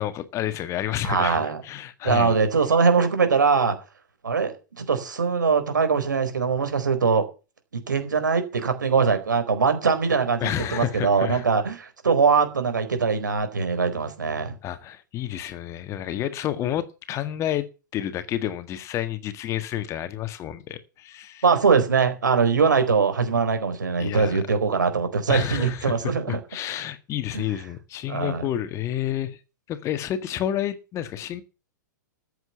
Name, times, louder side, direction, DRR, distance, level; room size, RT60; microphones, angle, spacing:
voice 1, 0.0-2.4 10.4-11.4 14.6-17.6 17.9-21.4 24.0-24.4 25.3-25.9 26.3-29.4 29.7-31.4, left 12 dB, 30° left, 1.7 m, -30 dB
voice 2, 1.0-1.6 2.0-3.8 4.2-7.2 7.7-14.6 21.4-26.4 27.3-27.5 28.1-28.4, right 5 dB, 75° right, 4.3 m, -22 dB
14.5 x 8.1 x 7.0 m
figure-of-eight pair, 110°, 10 cm